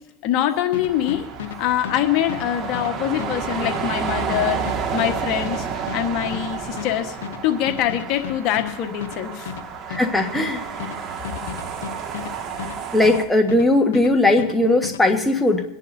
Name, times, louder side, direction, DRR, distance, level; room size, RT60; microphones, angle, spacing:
voice 1, 0.2-1.3 1.6-7.2 7.4-9.5, left 11 dB, 60° left, 5 dB, 1.3 m, -24 dB
sound 1, 0.7-13.7 13.9-15.0, left 10 dB, 85° left, 0.7 m, -34 dB
sound 2, 0.9-13.2, right 6 dB, 40° right, 1.9 m, -30 dB
voice 2, 9.9-10.6 12.9-15.6, left 2 dB, 5° left, 2 dB, 1.5 m, -18 dB
27.0 x 10.5 x 2.7 m, 1.0 s
supercardioid pair, 110°, 0 cm